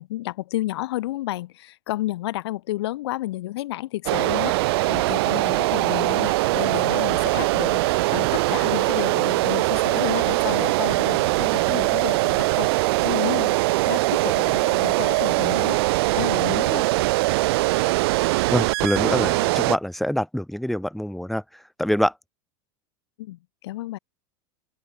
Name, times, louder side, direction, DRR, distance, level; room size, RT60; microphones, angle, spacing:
voice 1, 0.0-15.8 16.1-16.9 23.2-24.0, left 16 dB, 80° left, 1.2 m, -31 dB
sound 1, 4.1-19.8, right 21 dB, 75° right, 0.4 m, -22 dB
voice 2, 18.5-22.1, equal, ahead, 1.9 m, -25 dB
open air
supercardioid pair, 130°, 13 cm